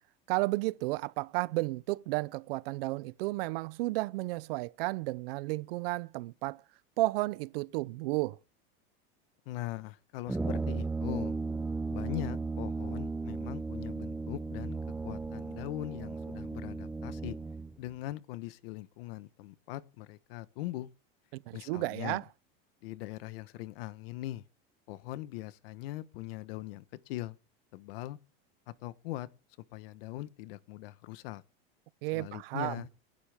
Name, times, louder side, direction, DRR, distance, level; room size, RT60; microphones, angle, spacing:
voice 1, 0.3-6.6 7.0-8.4 21.3-22.2 32.0-32.8, right 21 dB, 70° right, 0.7 m, -33 dB
voice 2, 9.5-11.4 11.9-17.4 17.8-20.9 21.5-22.2 22.8-24.4 24.9-27.4 27.7-28.2 28.7-29.3 29.7-31.4 32.1-32.9, left 16 dB, 70° left, 1.3 m, -41 dB
Brass instrument, 10.3-17.8, right 3 dB, 5° right, 0.7 m, -35 dB
27.0 x 12.0 x 3.6 m
supercardioid pair, 155°, 30 cm